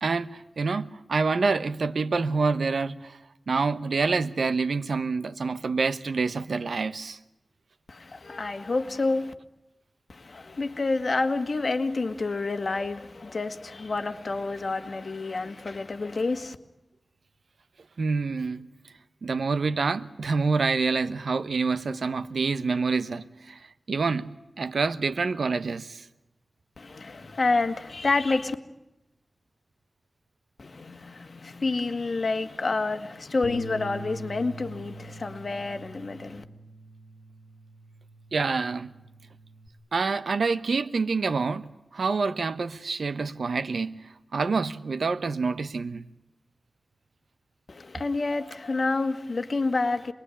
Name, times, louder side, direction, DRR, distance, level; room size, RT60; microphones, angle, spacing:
voice 1, 0.0-3.2 3.5-7.2 18.0-18.7 19.2-26.0 38.3-38.9 39.9-44.0 44.3-46.1, right 4 dB, 80° right, 1.0 m, -27 dB
voice 2, 7.9-9.3 10.1-16.6 26.8-28.6 30.6-36.4 47.7-50.1, left 3 dB, 55° left, 1.9 m, -28 dB
Bass guitar, 33.4-39.7, equal, 70° left, 2.0 m, -43 dB
27.5 x 21.5 x 10.0 m
wide cardioid pair, 100°, 0 cm